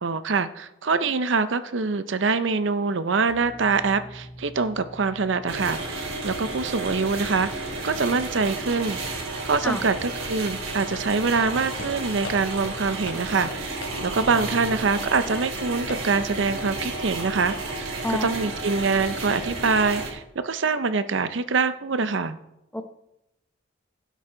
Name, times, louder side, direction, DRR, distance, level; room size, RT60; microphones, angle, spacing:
voice 1, 0.0-9.0 9.4-22.4, right 4 dB, 65° right, 12 dB, 0.6 m, -25 dB
sound 1, 3.3-8.5, equal, 45° left, 1.2 m, -47 dB
sound 2, 5.5-20.1, right 2 dB, 90° right, 3.1 m, -32 dB
sound 3, 10.9-14.0 14.3-14.5 14.9-15.2 15.9-16.1, left 2 dB, 80° left, 2.9 m, -40 dB
voice 2, 18.0-18.4 22.7-22.8, left 1 dB, 5° left, 6 dB, 0.9 m, -27 dB
16.0 x 8.2 x 3.9 m, 0.89 s
head